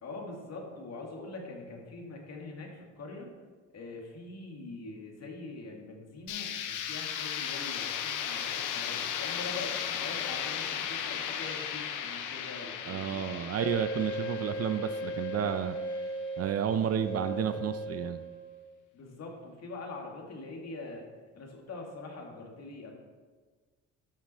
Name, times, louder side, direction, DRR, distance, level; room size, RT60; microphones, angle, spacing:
voice 1, 0.0-3.3 3.7-13.2 18.9-21.0 21.3-22.9, left 3 dB, 60° left, 0 dB, 2.2 m, -43 dB
sound 1, 6.3-16.0, left 9 dB, 90° left, 0.8 m, -36 dB
voice 2, 12.9-15.7 16.4-18.2, right 8 dB, 55° right, 10 dB, 0.6 m, -31 dB
Wind instrument woodwind instrument, 13.6-18.6, right 1 dB, 40° left, 1.1 m, -37 dB
11.5 x 5.9 x 4.3 m, 1.4 s
cardioid pair, 90°, 30 cm